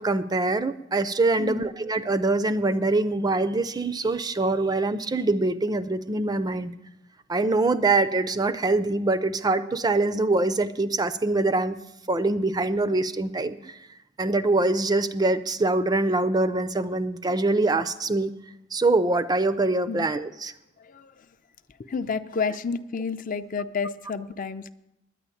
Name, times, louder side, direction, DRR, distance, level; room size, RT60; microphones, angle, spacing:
voice 1, 0.0-6.7 7.3-11.8 12.1-13.8 14.2-18.3 18.7-20.5, right 2 dB, 20° right, 13 dB, 0.4 m, -24 dB
voice 2, 20.8-21.2 21.8-24.7, left 5 dB, 40° left, 11 dB, 0.5 m, -30 dB
10.0 x 9.6 x 8.4 m, 0.88 s
head